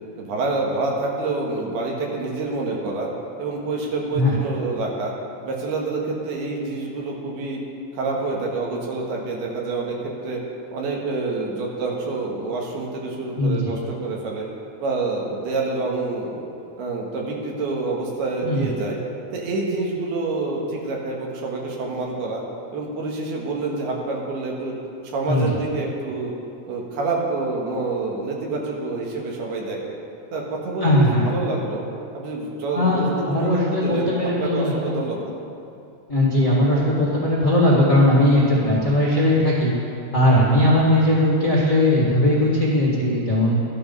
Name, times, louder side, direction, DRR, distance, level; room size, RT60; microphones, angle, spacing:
voice 1, 0.2-3.1 3.4-5.1 5.4-7.6 7.9-10.4 10.7-14.5 14.8-16.4 16.8-19.0 19.3-22.4 22.7-24.7 25.0-26.3 26.7-29.8 30.3-31.8 32.1-35.3, right 3 dB, 70° right, -1 dB, 3.4 m, -27 dB
voice 2, 30.8-31.3 32.7-34.9 36.1-39.7 40.1-43.6, left 1 dB, 45° left, -6 dB, 1.0 m, -19 dB
13.0 x 11.5 x 5.4 m, 2.7 s
omnidirectional pair, 4.8 m